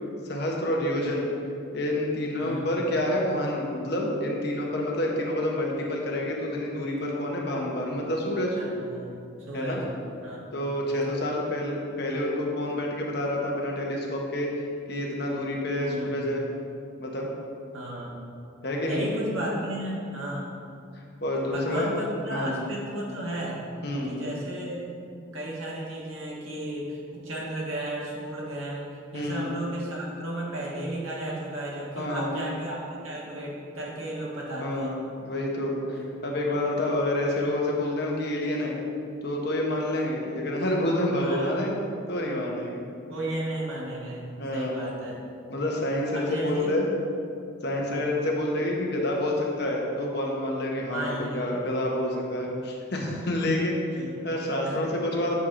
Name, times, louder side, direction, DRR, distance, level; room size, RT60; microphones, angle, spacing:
voice 1, 0.2-1.3 1.7-8.6 9.5-9.8 10.5-16.4 17.0-17.3 18.6-19.0 21.2-21.9 22.3-22.6 23.8-24.2 29.1-29.5 32.0-32.3 34.6-34.9 35.2-38.8 39.2-41.7 42.1-42.8 44.4-44.7 45.5-46.9 47.6-55.4, left 1 dB, 55° left, -1 dB, 1.0 m, -28 dB
voice 2, 8.5-9.8 10.2-10.4 15.7-16.3 17.7-18.1 18.8-20.5 21.5-23.6 24.1-24.8 25.1-34.9 35.9-36.1 41.2-41.6 43.1-45.2 46.1-46.7 47.8-48.0 50.9-51.6 52.4-52.5 53.9-54.1 54.6-54.8, right 1 dB, 90° right, -4 dB, 1.4 m, -34 dB
7.1 x 4.7 x 3.8 m, 2.5 s
head